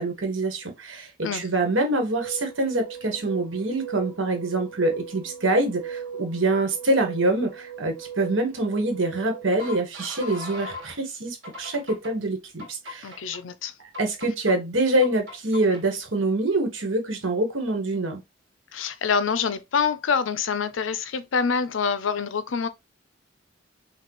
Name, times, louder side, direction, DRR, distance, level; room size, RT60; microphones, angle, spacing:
voice 1, 0.0-13.1 14.0-18.2, right 2 dB, 90° right, 1.5 m, -25 dB
sound 1, 2.1-11.0 11.4-12.1 12.6-13.4 13.9-14.5 15.0-15.8, right 4 dB, 65° right, 2.3 m, -39 dB
voice 2, 13.0-13.7 18.7-22.7, left 6 dB, 80° left, 0.5 m, -26 dB
5.9 x 2.4 x 3.0 m
head